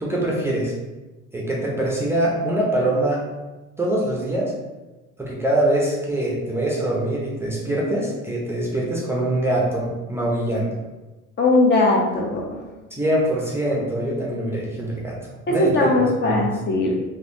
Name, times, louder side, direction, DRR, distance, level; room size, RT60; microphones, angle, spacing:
voice 1, 0.0-0.7 1.3-3.2 3.8-4.5 5.2-10.7 13.0-15.1 15.5-16.4, right 1 dB, 10° right, -4 dB, 0.6 m, -23 dB
voice 2, 11.4-12.6 15.5-17.0, left 2 dB, 35° left, -1 dB, 0.7 m, -19 dB
3.1 x 2.6 x 2.6 m, 1.1 s
supercardioid pair, 110°, 32 cm